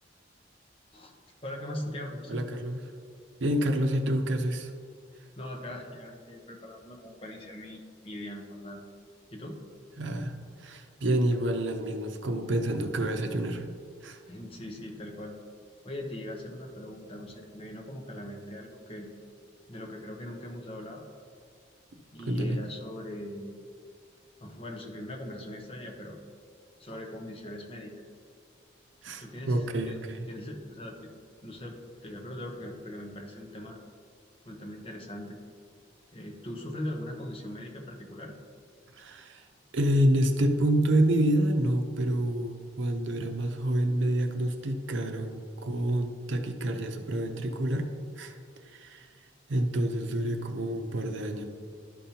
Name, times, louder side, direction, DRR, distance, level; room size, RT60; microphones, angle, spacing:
voice 1, 1.4-2.5 5.4-8.8 9.3-9.6 14.3-15.4 15.8-19.1 19.7-21.0 22.1-23.7 24.4-26.2 26.8-27.9 29.2-30.0 30.3-31.1 31.4-33.8 34.5-35.4 36.1-38.3, left 1 dB, 30° left, 0 dB, 0.8 m, -40 dB
voice 2, 2.3-2.8 3.4-4.7 10.0-10.3 10.6-13.7 14.0-14.2 22.3-22.6 29.0-30.3 38.9-39.4 39.7-47.9 48.2-48.4 48.7-49.1 49.5-51.4, right 1 dB, 80° right, 5 dB, 0.7 m, -28 dB
11.5 x 5.3 x 2.9 m, 2.1 s
head